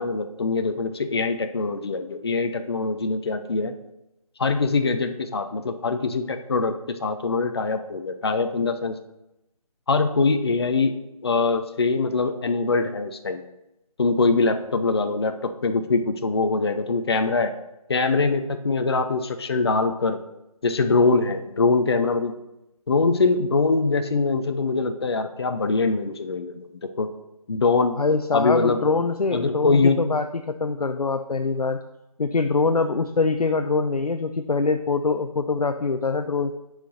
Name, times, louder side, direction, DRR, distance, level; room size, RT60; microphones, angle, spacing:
voice 1, 0.0-3.7 4.4-9.0 9.9-10.9 11.2-13.4 14.0-17.5 17.9-20.2 20.6-22.4 22.9-27.1 27.5-28.0 28.3-28.8 29.3-30.0, left 3 dB, 45° left, 8 dB, 0.6 m, -23 dB
voice 2, 28.0-31.8 32.2-36.5, left 4 dB, 85° left, 7 dB, 0.6 m, -24 dB
6.6 x 4.9 x 6.3 m, 0.91 s
figure-of-eight pair, 160°, 19 cm